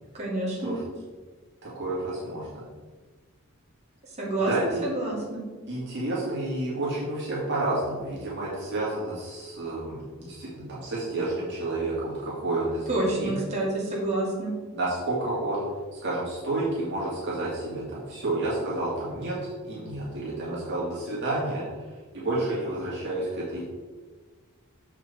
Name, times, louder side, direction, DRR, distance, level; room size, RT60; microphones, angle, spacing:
voice 1, 0.2-0.7 4.2-4.5 4.8-5.4 12.9-14.5, right 2 dB, 30° right, -6 dB, 2.3 m, -28 dB
voice 2, 1.6-2.6 4.4-4.8 5.7-13.4 14.7-15.7 16.0-21.9 22.1-23.7, right 2 dB, 55° right, -7 dB, 2.1 m, -30 dB
6.9 x 6.0 x 4.1 m, 1.4 s
head